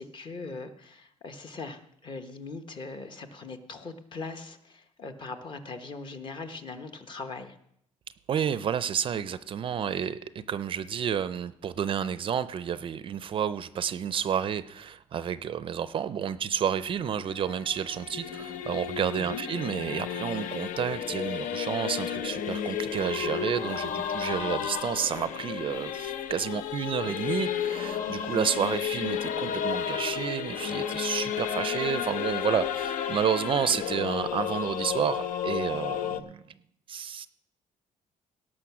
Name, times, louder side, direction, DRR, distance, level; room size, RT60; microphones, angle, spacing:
voice 1, 0.0-7.5 19.2-19.4, left 3 dB, 35° left, 7 dB, 1.0 m, -40 dB
voice 2, 8.3-36.4 36.9-37.3, right 8 dB, 40° right, 14 dB, 0.4 m, -30 dB
Singing / Musical instrument, 16.8-36.2, left 8 dB, 75° left, 0.7 m, -32 dB
17.5 x 6.2 x 6.0 m, 0.74 s
cardioid pair, 160°, 13 cm